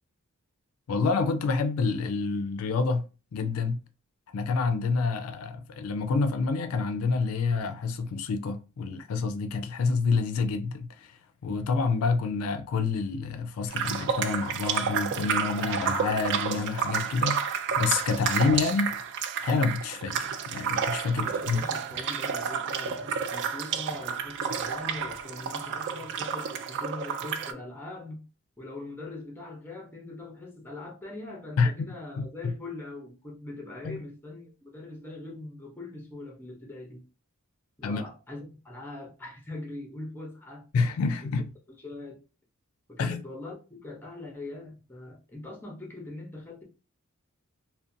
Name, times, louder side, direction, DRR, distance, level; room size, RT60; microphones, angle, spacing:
voice 1, 0.9-3.8 4.3-18.9 19.4-21.6 31.6-31.7 32.4-32.5 33.8-34.0 37.8-38.0 40.7-41.5 43.0-43.2, left 4 dB, 75° left, 0.3 m, -28 dB
sound 1, 13.7-27.5, right 7 dB, 55° right, 0.3 m, -30 dB
voice 2, 21.1-28.2 28.6-37.0 37.8-40.6 41.8-42.2 42.9-46.6, left 2 dB, 10° left, 0.6 m, -42 dB
2.5 x 2.1 x 2.6 m
head